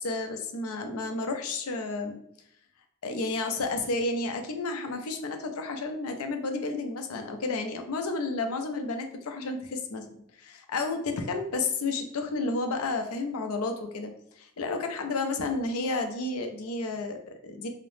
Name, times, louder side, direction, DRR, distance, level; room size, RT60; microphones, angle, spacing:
voice 1, 0.0-2.2 3.0-10.1 10.4-17.7, left 3 dB, 80° left, 5 dB, 0.5 m, -31 dB
2.8 x 2.0 x 3.1 m, 0.70 s
head